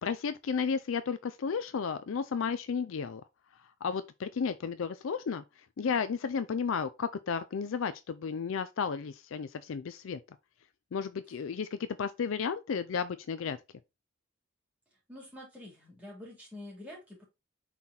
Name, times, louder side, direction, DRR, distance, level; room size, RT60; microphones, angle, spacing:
voice 1, 0.0-3.2 3.8-5.4 5.8-10.2 10.9-13.6, left 6 dB, 70° left, 0.4 m, -33 dB
voice 2, 15.1-17.2, left 1 dB, 5° right, 3.0 m, -47 dB
5.7 x 4.0 x 4.2 m
head